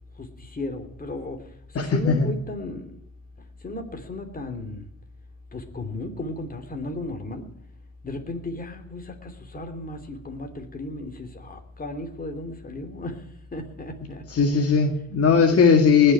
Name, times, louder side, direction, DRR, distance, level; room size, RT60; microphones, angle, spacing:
voice 1, 0.2-1.4 1.7-3.0 3.6-4.9 5.5-7.5 8.0-14.2 15.3-15.6, left 2 dB, 30° left, 5 dB, 2.9 m, -35 dB
voice 2, 1.8-2.3 14.3-16.1, left 5 dB, 50° left, 4 dB, 1.9 m, -18 dB
19.5 x 6.7 x 8.7 m, 0.76 s
cardioid pair, 90°, 30 cm